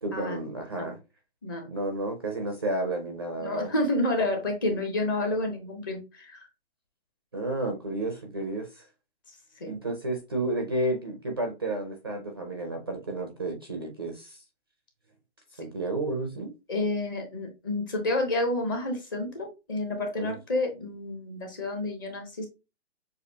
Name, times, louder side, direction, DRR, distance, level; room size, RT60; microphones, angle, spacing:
voice 1, 0.0-1.0 1.7-3.7 7.3-8.9 9.6-14.4 15.6-16.5 20.2-20.3, right 2 dB, 20° right, 0.4 m, -31 dB
voice 2, 3.4-6.4 9.6-9.7 16.7-22.5, left 2 dB, 20° left, 0.7 m, -29 dB
6.6 x 2.5 x 2.7 m
hypercardioid pair, 165°, 34 cm